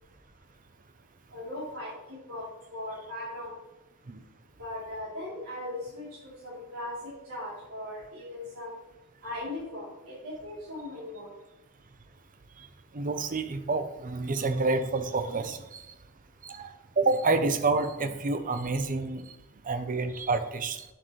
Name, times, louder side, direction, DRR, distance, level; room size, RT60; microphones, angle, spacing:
voice 1, 1.3-2.4 2.7-3.6 4.6-6.9 7.2-8.8 9.2-11.3, left 1 dB, 70° right, -10 dB, 3.3 m, -38 dB
voice 2, 12.9-15.8 16.4-16.7 17.0-19.2 19.7-20.8, right 3 dB, 40° right, 9 dB, 0.6 m, -28 dB
9.3 x 7.4 x 3.2 m, 0.97 s
head